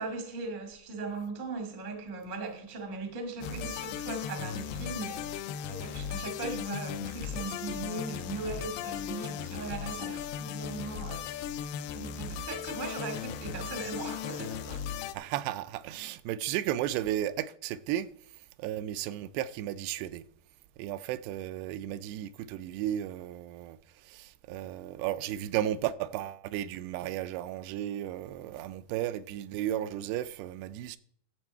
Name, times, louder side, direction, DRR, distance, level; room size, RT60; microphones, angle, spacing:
voice 1, 0.0-5.2 5.7-11.2 11.8-14.8, right 3 dB, 40° right, 0.7 m, -38 dB
sound 1, 3.4-15.1, left 8 dB, 85° left, 2.6 m, -37 dB
voice 2, 15.1-18.1 18.6-20.2 20.8-23.8 24.1-31.0, right 12 dB, 85° right, 2.6 m, -34 dB
12.0 x 7.6 x 4.5 m
omnidirectional pair, 4.8 m